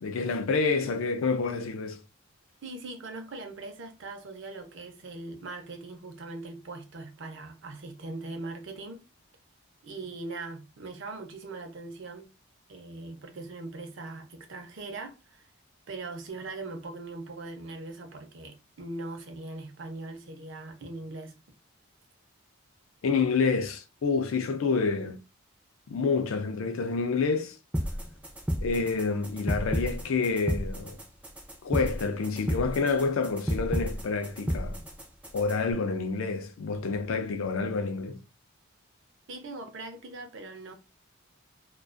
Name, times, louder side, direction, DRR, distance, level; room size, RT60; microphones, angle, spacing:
voice 1, 0.0-2.0 23.0-25.2 25.9-27.6 28.6-31.0 31.6-34.8 35.3-38.2, left 4 dB, 70° left, 0.4 m, -28 dB
voice 2, 2.6-9.0 9.8-12.3 12.7-15.5 15.9-21.4 39.3-40.7, right 2 dB, 60° right, 0.5 m, -40 dB
sound 1, 27.7-35.7, equal, 5° right, 0.4 m, -33 dB
2.3 x 2.3 x 2.4 m
head